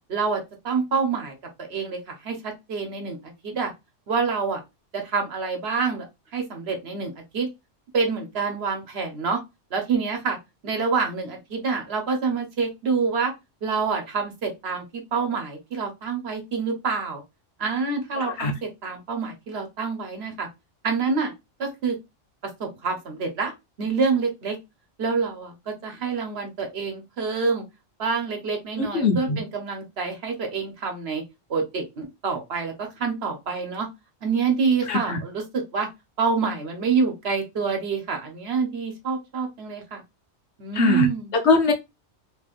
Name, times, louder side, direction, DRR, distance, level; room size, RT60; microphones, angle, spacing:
voice 1, 0.1-3.7 4.1-4.6 4.9-6.1 6.3-7.5 7.9-9.4 9.7-10.4 10.6-13.3 13.6-17.2 17.6-20.5 20.8-21.3 21.6-22.0 22.6-23.5 23.8-24.6 25.0-27.6 28.0-31.2 31.5-33.9 34.2-35.9 36.2-40.0 40.6-41.3, right 5 dB, 60° right, 1.1 m, -27 dB
voice 2, 18.2-18.5 28.8-29.4 34.9-35.2 40.7-41.1 41.4-41.7, left 4 dB, 70° left, 1.0 m, -21 dB
3.3 x 2.9 x 2.4 m
omnidirectional pair, 1.2 m